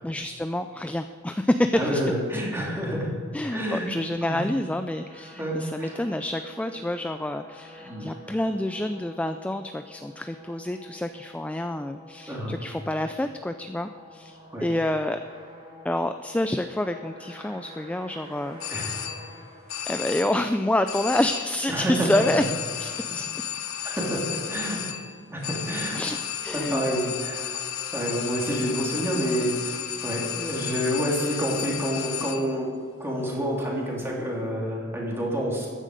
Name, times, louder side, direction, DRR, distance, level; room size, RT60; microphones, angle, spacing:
voice 1, 0.0-2.0 3.3-15.2 15.8-18.6 19.9-22.4 22.8-23.3 26.0-26.2 26.4-26.8, left 1 dB, 5° left, 8 dB, 0.3 m, -28 dB
voice 2, 1.7-3.1 3.5-3.9 4.2-4.4 5.4-6.0 7.8-8.1 12.3-12.5 14.5-14.6 18.7-18.9 21.7-22.2 23.8-24.2 24.5-24.8 25.3-26.1 26.5-27.5 27.9-29.8 30.0-32.7 33.0-35.7, equal, 10° right, -3 dB, 3.1 m, -28 dB
sound 1, 4.2-20.5, left 1 dB, 30° right, 2.9 m, -48 dB
sound 2, 18.6-19.4 19.7-20.5 20.9-21.7 22.1-32.6, left 10 dB, 85° left, 1.0 m, -33 dB
14.0 x 10.0 x 5.2 m, 2.1 s
head